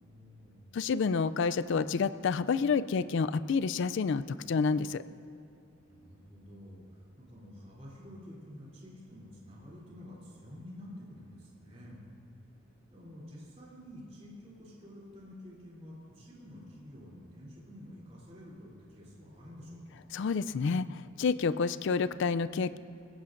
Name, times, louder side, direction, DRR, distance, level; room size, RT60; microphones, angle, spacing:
voice 1, 0.0-0.8 5.9-12.0 12.9-20.0, left 1 dB, 30° right, -6 dB, 3.1 m, -49 dB
voice 2, 0.7-5.0 20.1-22.8, left 5 dB, 60° left, 13 dB, 0.3 m, -29 dB
21.0 x 16.0 x 2.6 m, 2.5 s
head